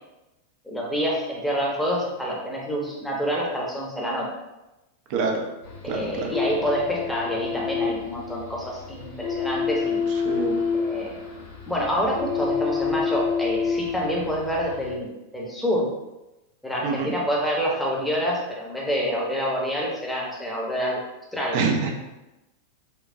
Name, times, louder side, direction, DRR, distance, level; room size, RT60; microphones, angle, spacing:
voice 1, 0.6-4.3 5.8-10.0 10.7-11.2 11.7-15.9 16.6-21.0 21.3-21.6, equal, 5° left, -3 dB, 0.9 m, -27 dB
voice 2, 5.1-5.4 5.9-6.3 10.1-10.6 16.8-17.1 21.5-21.9, right 5 dB, 45° right, 2 dB, 0.6 m, -26 dB
sound 1, 5.6-14.9, left 6 dB, 55° left, 0.9 m, -29 dB
4.3 x 2.2 x 2.6 m, 1.0 s
figure-of-eight pair, 90°, 0 cm